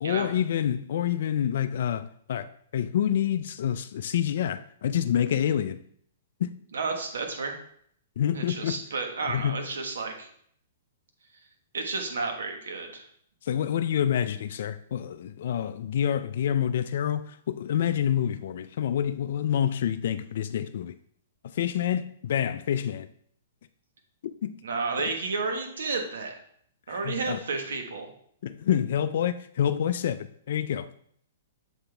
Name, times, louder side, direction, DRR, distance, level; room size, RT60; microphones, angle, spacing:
voice 1, 0.0-2.5 2.7-5.8 6.4-6.5 8.2-8.8 9.3-9.7 13.4-20.9 21.5-23.1 24.4-24.6 25.0-25.1 26.9-27.4 28.4-30.9, left 9 dB, 65° left, 0.3 m, -27 dB
voice 2, 6.7-7.5 8.3-10.3 11.7-13.1 24.6-26.3 26.9-28.1, right 4 dB, 80° right, 1.3 m, -31 dB
7.0 x 4.0 x 3.3 m
hypercardioid pair, 135°, 0 cm